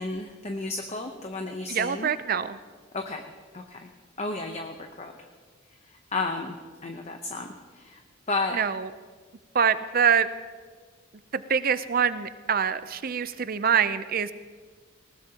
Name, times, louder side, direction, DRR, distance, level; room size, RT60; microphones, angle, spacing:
voice 1, 0.0-2.1 2.9-3.2 3.5-3.9 4.2-5.1 6.1-6.6 6.8-7.5 7.7-8.0 8.3-8.6, left 3 dB, 30° left, 4 dB, 0.8 m, -32 dB
voice 2, 1.7-2.6 8.5-8.9 9.5-10.3 11.3-14.3, right 7 dB, 45° right, 13 dB, 0.5 m, -25 dB
19.5 x 19.0 x 2.9 m, 1.5 s
head